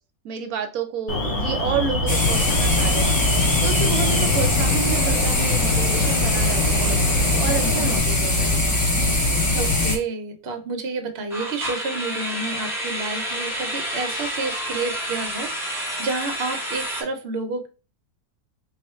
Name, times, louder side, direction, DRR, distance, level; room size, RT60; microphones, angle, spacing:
voice 1, 0.2-3.2 3.6-8.6, right 7 dB, 75° right, 6 dB, 1.0 m, -30 dB
Alarm, 1.1-8.0, left 1 dB, 55° left, 1.1 m, -26 dB
sound 1, 2.1-10.0, left 2 dB, 20° left, 0.5 m, -21 dB
sound 2, 5.7-5.9 6.3-6.4 11.3-17.0, equal, ahead, 0.8 m, -29 dB
voice 2, 7.6-7.9 9.5-17.7, right 3 dB, 55° right, 5 dB, 0.8 m, -30 dB
3.2 x 2.4 x 4.2 m, 0.33 s
omnidirectional pair, 1.6 m